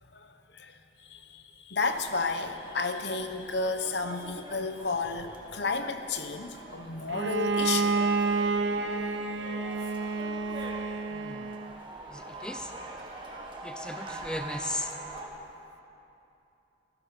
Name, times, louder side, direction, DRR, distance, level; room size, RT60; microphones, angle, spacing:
voice 1, 1.1-8.0, left 4 dB, 60° left, 8 dB, 1.0 m, -32 dB
sound 1, 1.8-15.3, right 2 dB, 25° right, 1.7 m, -44 dB
Bowed string instrument, 7.1-11.8, right 3 dB, 75° right, 0.8 m, -29 dB
voice 2, 11.1-11.5 12.1-12.7 13.6-14.9, left 1 dB, 5° left, 6 dB, 0.5 m, -37 dB
15.5 x 13.5 x 7.1 m, 2.8 s
head